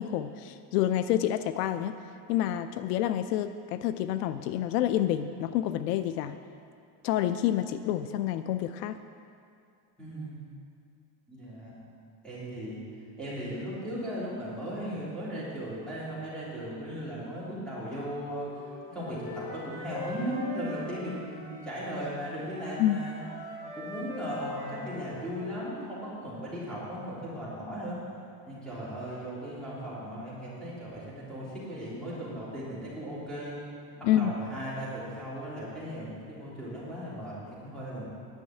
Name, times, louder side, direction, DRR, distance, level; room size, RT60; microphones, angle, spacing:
voice 1, 0.0-1.9 2.3-6.4 7.0-9.0 22.8-23.0 34.0-34.3, left 11 dB, 80° left, 11 dB, 0.6 m, -28 dB
voice 2, 10.0-10.3 11.3-11.8 12.2-12.8 13.2-18.5 18.9-23.2 23.7-28.0 28.5-33.6 34.0-38.1, equal, ahead, -10 dB, 3.4 m, -37 dB
Wind instrument woodwind instrument, 18.5-22.0 22.2-25.8, left 2 dB, 45° left, 3.1 m, -43 dB
10.5 x 6.4 x 9.0 m, 2.4 s
supercardioid pair, 165°, 48 cm